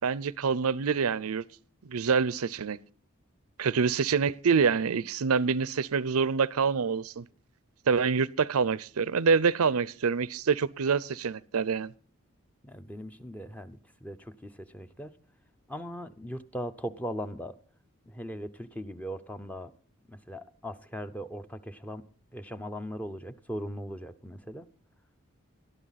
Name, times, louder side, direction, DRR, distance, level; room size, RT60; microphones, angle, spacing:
voice 1, 0.0-1.4 1.8-2.8 3.6-7.2 7.9-11.9, right 5 dB, 90° right, 0.6 m, -26 dB
voice 2, 12.6-15.2 15.7-17.6 18.0-19.7 20.1-22.0 22.3-24.7, equal, 5° left, 0.6 m, -39 dB
19.0 x 12.5 x 4.1 m
head